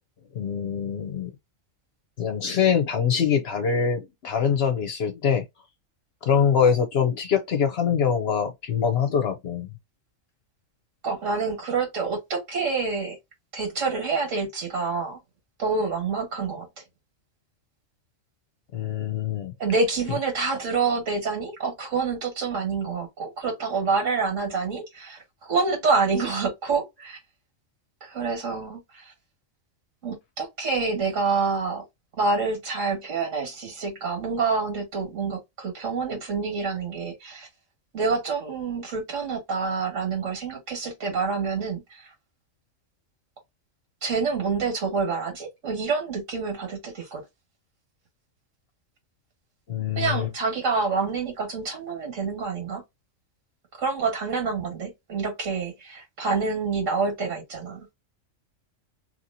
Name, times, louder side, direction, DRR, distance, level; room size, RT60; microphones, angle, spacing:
voice 1, 0.3-1.3 2.2-5.4 6.2-9.7 18.7-19.5 49.7-50.3, left 7 dB, 60° left, 0.8 m, -24 dB
voice 2, 11.0-13.2 13.5-15.2 15.6-16.7 19.6-25.2 25.5-27.2 28.0-29.1 30.0-31.8 32.2-37.5 37.9-42.1 44.0-47.2 50.0-52.8 53.8-57.8, right 4 dB, 70° right, 1.8 m, -27 dB
3.0 x 2.8 x 2.6 m
omnidirectional pair, 1.4 m